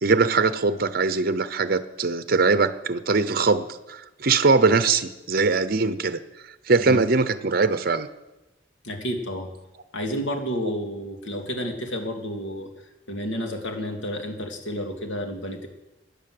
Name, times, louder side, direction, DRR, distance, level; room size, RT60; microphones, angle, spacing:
voice 1, 0.0-6.2 6.7-8.1, right 4 dB, 55° right, 13 dB, 0.8 m, -21 dB
voice 2, 8.8-9.5 9.9-12.7 13.1-15.7, equal, 90° left, 3 dB, 2.4 m, -30 dB
17.5 x 10.0 x 7.8 m, 1.0 s
head